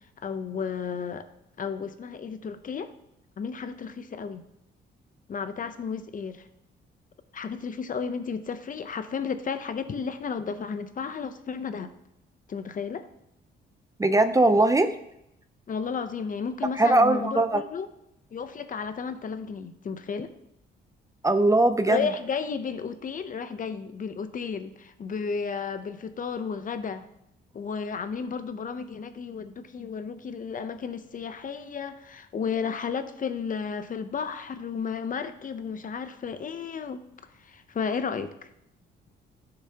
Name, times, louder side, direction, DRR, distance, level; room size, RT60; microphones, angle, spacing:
voice 1, 0.2-1.3 1.6-2.9 3.4-4.4 5.3-6.5 7.3-11.9 12.5-13.0 15.7-17.9 18.3-20.3 21.9-27.0 27.5-37.0 37.4-38.5, left 6 dB, 45° left, 10 dB, 0.7 m, -33 dB
voice 2, 14.0-15.0 16.8-17.6 21.2-22.1, right 2 dB, 15° right, 10 dB, 0.5 m, -20 dB
12.0 x 6.7 x 2.9 m, 0.81 s
cardioid pair, 90°, 20 cm